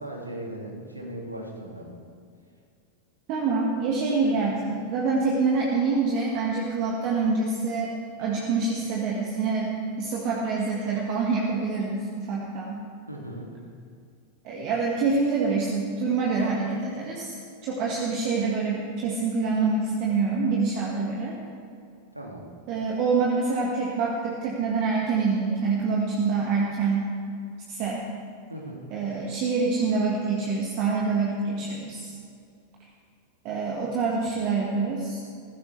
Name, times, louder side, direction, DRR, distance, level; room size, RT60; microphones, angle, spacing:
voice 1, 0.0-1.9 13.1-13.5 22.1-22.5 28.5-28.8, right 1 dB, 85° right, -1 dB, 2.4 m, -38 dB
voice 2, 3.3-7.9 8.2-12.8 14.4-17.3 17.6-21.4 22.7-27.1 27.7-28.1 28.9-32.1 33.4-35.2, right 4 dB, 40° right, -2 dB, 1.9 m, -26 dB
19.5 x 15.5 x 3.4 m, 2.3 s
figure-of-eight pair, 90°, 0 cm